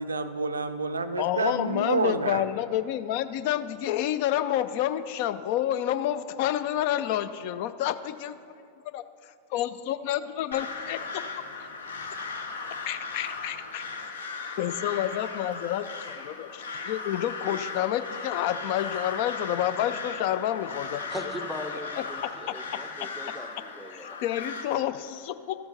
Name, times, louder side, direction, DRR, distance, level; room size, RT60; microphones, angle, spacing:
voice 1, 0.0-2.4, right 3 dB, 75° right, 10 dB, 0.4 m, -28 dB
voice 2, 1.2-8.3 8.9-9.0 9.5-11.4 12.9-14.1 14.6-21.0 22.0-22.1 23.9-25.6, left 12 dB, 45° left, 13 dB, 0.4 m, -29 dB
Crow, 10.5-24.7, left 4 dB, 65° left, 0.7 m, -37 dB
voice 3, 21.1-24.2, left 1 dB, ahead, 5 dB, 0.6 m, -39 dB
13.0 x 6.9 x 3.9 m, 2.3 s
figure-of-eight pair, 90°, 0 cm